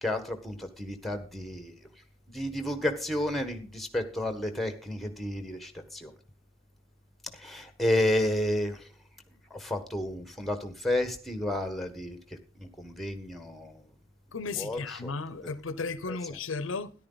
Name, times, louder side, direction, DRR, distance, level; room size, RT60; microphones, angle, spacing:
voice 1, 0.0-1.8 2.3-6.1 7.3-8.8 9.5-12.2 12.5-13.8 14.5-15.1 15.4-15.5 16.1-16.2, left 1 dB, ahead, 1.5 m, -31 dB
voice 2, 14.3-16.9, left 4 dB, 75° left, 0.8 m, -35 dB
13.5 x 11.0 x 4.0 m
head